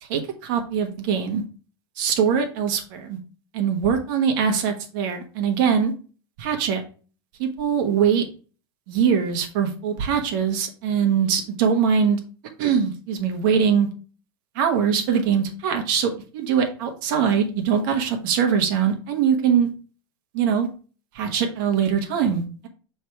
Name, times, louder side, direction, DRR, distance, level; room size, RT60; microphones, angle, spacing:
voice 1, 0.0-1.4 2.0-3.2 3.5-5.9 6.4-6.8 7.4-8.3 8.9-12.2 12.6-13.9 14.5-19.7 20.3-20.7 21.1-22.7, right 7 dB, 60° right, 4 dB, 1.3 m, -22 dB
6.3 x 3.4 x 4.5 m, 0.38 s
supercardioid pair, 145°, 12 cm